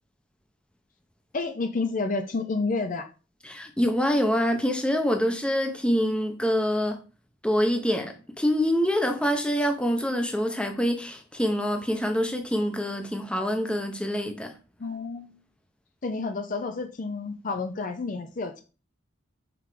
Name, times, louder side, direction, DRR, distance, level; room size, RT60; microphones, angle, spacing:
voice 1, 1.3-3.1 14.8-15.3 16.0-18.6, left 3 dB, 40° left, 0.5 m, -30 dB
voice 2, 3.5-7.0 7.4-14.5, equal, 5° left, 0.8 m, -25 dB
5.8 x 3.5 x 4.9 m
head